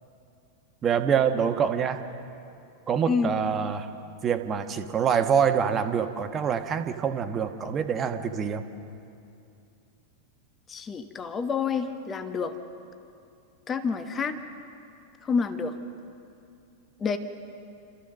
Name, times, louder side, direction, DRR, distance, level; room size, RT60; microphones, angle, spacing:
voice 1, 0.8-2.0 2.9-3.9 4.2-8.6, right 7 dB, 25° right, 7 dB, 1.3 m, -25 dB
voice 2, 10.7-12.6 13.7-14.4 15.2-15.7 17.0-17.2, left 5 dB, 20° left, 8 dB, 1.2 m, -28 dB
29.0 x 14.0 x 6.5 m, 2.6 s
figure-of-eight pair, 90°, 0 cm